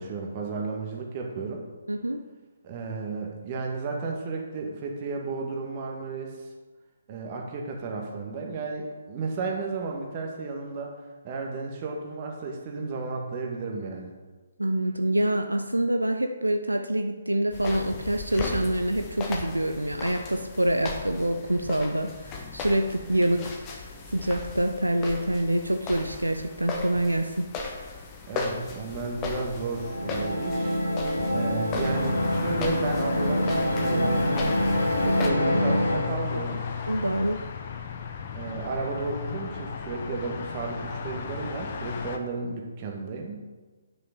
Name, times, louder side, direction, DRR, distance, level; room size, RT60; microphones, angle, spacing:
voice 1, 0.0-1.6 2.6-6.5 7.1-11.0 11.2-14.1 28.3-30.8 31.3-34.6 35.0-36.6 38.3-43.4, right 3 dB, 30° right, 0 dB, 1.8 m, -33 dB
voice 2, 1.9-2.2 14.6-27.5 36.9-37.4, right 1 dB, 80° right, 6 dB, 0.6 m, -26 dB
sound 1, 17.5-35.3, left 4 dB, 20° left, 1.2 m, -37 dB
sound 2, 29.7-36.1, equal, 75° left, 2.3 m, -26 dB
sound 3, 31.9-42.2, left 5 dB, 40° left, 0.9 m, -34 dB
9.6 x 6.3 x 5.3 m, 1.3 s
figure-of-eight pair, 135°, 0 cm